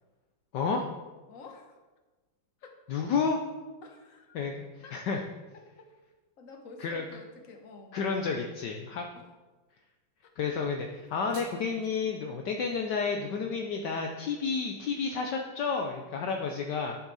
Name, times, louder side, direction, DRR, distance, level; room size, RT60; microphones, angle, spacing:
voice 1, 0.5-0.9 2.9-3.4 4.3-5.2 6.8-7.0 7.9-9.1 10.4-17.0, left 5 dB, 65° left, 2 dB, 1.3 m, -31 dB
voice 2, 1.3-1.8 2.6-2.8 3.8-4.4 4.8-5.0 5.5-5.9 6.4-8.4 9.1-9.3 10.2-10.3 15.0-15.1, left 3 dB, 45° left, 4 dB, 1.5 m, -50 dB
sound 1, 10.9-11.9, right 2 dB, 35° right, 2.0 m, -52 dB
11.5 x 7.2 x 4.1 m, 1.2 s
omnidirectional pair, 2.1 m